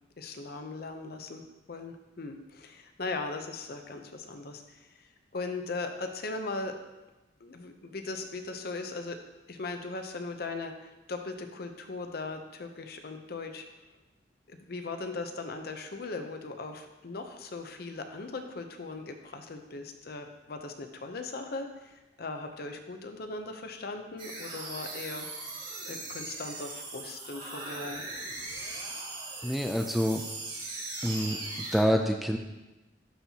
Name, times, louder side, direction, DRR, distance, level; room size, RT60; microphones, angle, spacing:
voice 1, 0.2-1.4 1.7-6.7 7.4-9.2 9.5-13.6 14.5-25.5 25.8-28.0, left 3 dB, 60° left, 6 dB, 0.7 m, -39 dB
sound 1, 24.2-31.8, right 2 dB, 50° right, 2.3 m, -39 dB
voice 2, 29.4-30.2 31.0-31.4 31.7-32.4, equal, ahead, 3 dB, 0.3 m, -26 dB
11.0 x 4.4 x 2.8 m, 1.1 s
head